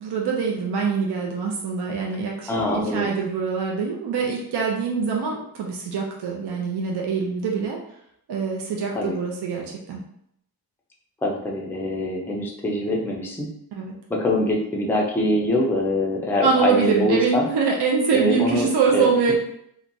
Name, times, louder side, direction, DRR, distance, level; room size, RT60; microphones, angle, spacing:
voice 1, 0.0-7.8 8.3-10.0 13.8-13.9 16.4-19.4, right 5 dB, 75° right, -1 dB, 0.5 m, -24 dB
voice 2, 2.5-3.1 8.9-9.2 11.2-13.5 14.1-17.5 18.1-19.1, left 1 dB, 5° left, -1 dB, 0.3 m, -24 dB
2.9 x 2.2 x 2.5 m, 0.73 s
wide cardioid pair, 170°, 39 cm